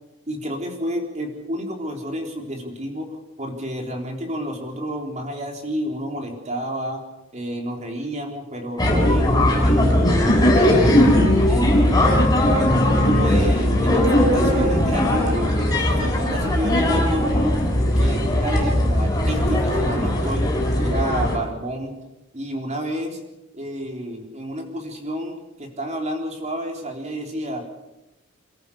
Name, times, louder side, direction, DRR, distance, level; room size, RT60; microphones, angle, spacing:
voice 1, 0.3-7.0 7.3-10.9 11.5-12.0 13.0-17.6 18.0-20.5 20.8-22.0 22.3-23.2 23.5-27.7, equal, 35° right, 3 dB, 3.9 m, -30 dB
sound 1, 8.8-21.4, left 1 dB, 15° left, 6.8 m, -18 dB
29.0 x 14.0 x 7.1 m, 0.97 s
head